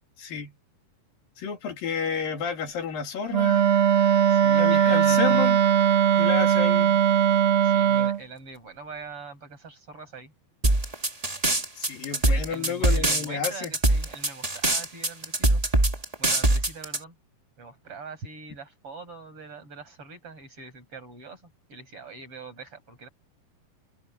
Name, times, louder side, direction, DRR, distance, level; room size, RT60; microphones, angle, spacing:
voice 1, 0.2-0.5 1.4-3.8 4.6-5.6 6.2-7.0 11.8-13.7, left 7 dB, 75° left, 4.3 m, -31 dB
Wind instrument woodwind instrument, 3.3-8.2, right 9 dB, 60° right, 1.6 m, -20 dB
voice 2, 4.3-5.5 7.6-10.3 12.2-15.6 16.2-17.1 17.6-23.1, right 3 dB, 35° right, 9.0 m, -43 dB
sound 1, 10.6-17.0, right 2 dB, 20° right, 1.0 m, -22 dB
omnidirectional pair, 4.2 m